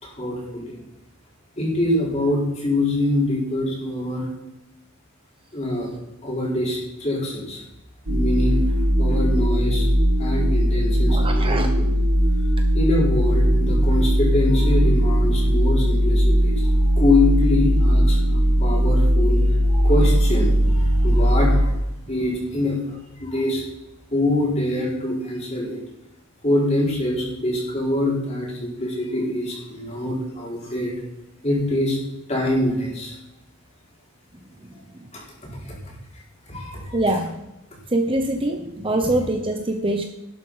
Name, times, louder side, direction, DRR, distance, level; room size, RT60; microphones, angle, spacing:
voice 1, 0.0-0.8 1.6-4.3 5.5-5.9 6.2-7.6 8.1-8.6 9.0-9.9 10.2-11.9 12.7-19.4 19.7-21.7 22.1-23.6 24.1-25.8 26.4-30.9 31.4-32.0 32.3-33.2 35.1-35.8 36.5-37.0, left 1 dB, 30° left, -4 dB, 4.5 m, -24 dB
sound 1, 8.1-21.6, equal, 75° right, 1.3 m, -19 dB
voice 2, 11.1-11.7 34.9-35.1 36.9-37.4 37.9-40.0, right 1 dB, 25° right, 4 dB, 0.9 m, -24 dB
11.5 x 9.6 x 5.7 m, 0.94 s
head